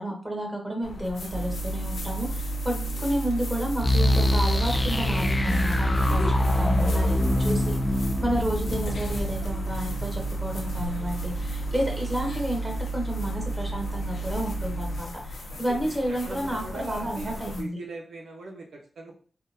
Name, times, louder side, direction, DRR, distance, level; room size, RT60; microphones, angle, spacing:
voice 1, 0.0-7.7 8.2-17.8, equal, 20° right, 1 dB, 1.1 m, -31 dB
sound 1, 0.8-17.6, left 2 dB, 75° left, 0.6 m, -39 dB
sound 2, 1.3-15.0, right 3 dB, 70° right, 1.5 m, -32 dB
sound 3, 3.8-10.6, left 1 dB, 25° left, 0.3 m, -25 dB
voice 2, 15.5-19.2, right 2 dB, 85° right, 0 dB, 0.8 m, -40 dB
3.6 x 2.2 x 2.7 m, 0.41 s
cardioid pair, 50°, 0 cm